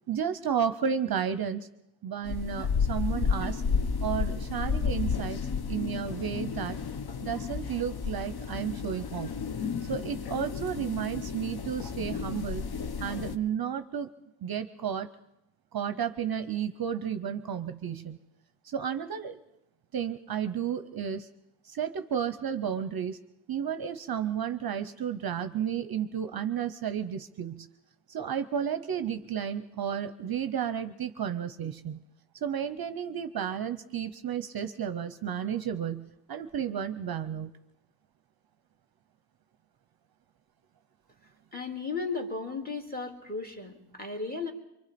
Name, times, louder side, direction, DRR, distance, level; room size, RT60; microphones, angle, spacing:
voice 1, 0.1-1.7 2.0-3.6 4.0-5.4 5.7-6.8 7.2-9.3 9.9-12.6 13.0-14.1 14.4-15.1 15.7-18.2 18.7-19.4 19.9-21.3 21.7-23.2 23.5-27.7 28.1-32.0 32.4-37.5, right 8 dB, 50° right, 10 dB, 0.7 m, -32 dB
sound 1, 2.2-13.4, left 5 dB, 50° left, 0.8 m, -32 dB
voice 2, 41.5-44.5, left 4 dB, 20° left, 2 dB, 2.2 m, -35 dB
25.0 x 24.0 x 4.3 m, 0.88 s
wide cardioid pair, 150°, 49 cm